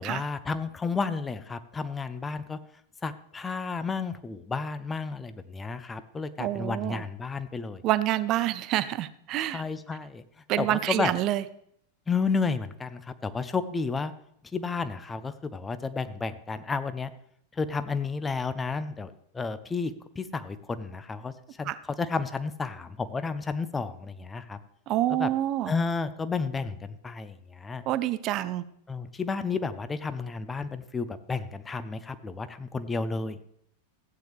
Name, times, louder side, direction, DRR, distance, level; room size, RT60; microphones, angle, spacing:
voice 1, 0.0-2.6 3.0-7.8 9.5-10.2 10.6-11.1 12.1-14.1 14.5-17.1 17.5-24.6 25.1-25.3 25.7-27.8 28.9-33.4, left 4 dB, 15° left, 12 dB, 0.7 m, -32 dB
voice 2, 6.4-7.0 7.8-9.6 10.5-11.4 21.7-21.8 24.9-25.7 27.9-28.6, right 14 dB, 35° right, 15 dB, 0.6 m, -27 dB
15.0 x 8.9 x 3.4 m, 0.70 s
figure-of-eight pair, 90°, 0 cm